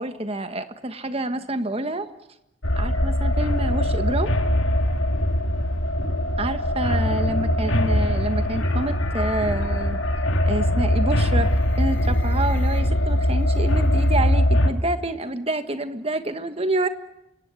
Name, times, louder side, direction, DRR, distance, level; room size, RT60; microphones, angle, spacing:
voice 1, 0.0-2.1 2.8-4.3 6.4-10.0 10.5-11.5 11.8-16.9, right 2 dB, 30° right, 9 dB, 1.4 m, -28 dB
sound 1, 2.6-14.7, left 1 dB, 80° left, 2.6 m, -21 dB
27.0 x 17.0 x 9.7 m, 0.87 s
head